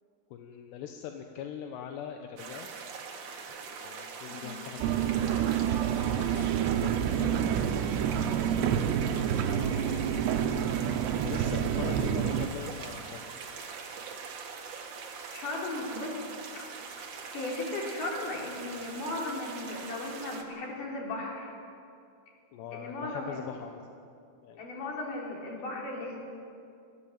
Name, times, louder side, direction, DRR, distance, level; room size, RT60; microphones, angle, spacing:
voice 1, 0.3-2.7 3.5-8.0 8.7-10.4 11.2-13.2 22.5-23.9 24.4-24.8, left 8 dB, 80° left, 4 dB, 3.1 m, -43 dB
sound 1, 2.4-20.4, right 5 dB, 55° right, 2.9 m, -43 dB
voice 2, 4.3-4.7 9.7-10.0 15.3-16.2 16.6-21.6 22.7-23.4 24.6-26.2, left 2 dB, 50° left, -2 dB, 5.2 m, -37 dB
sound 2, 4.8-12.5, right 9 dB, 80° right, 3.0 m, -28 dB
21.5 x 16.0 x 8.8 m, 2.4 s
omnidirectional pair, 4.9 m